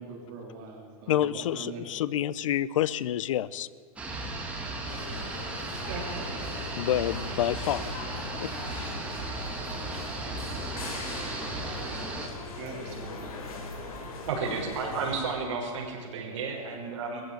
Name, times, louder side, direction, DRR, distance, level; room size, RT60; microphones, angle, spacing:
voice 1, 0.0-1.9 5.9-6.5 12.6-13.3, right 4 dB, 35° right, 1 dB, 3.3 m, -41 dB
voice 2, 1.1-3.7 6.7-7.9 8.4-9.0, left 12 dB, 60° left, 20 dB, 0.8 m, -28 dB
sound 1, 4.0-12.3, right 2 dB, 5° right, 2.2 m, -36 dB
sound 2, 4.9-15.2, left 2 dB, 75° left, 5.6 m, -40 dB
voice 3, 14.3-17.2, right 4 dB, 55° right, 0 dB, 5.9 m, -32 dB
19.5 x 15.5 x 9.3 m, 2.1 s
supercardioid pair, 175°, 18 cm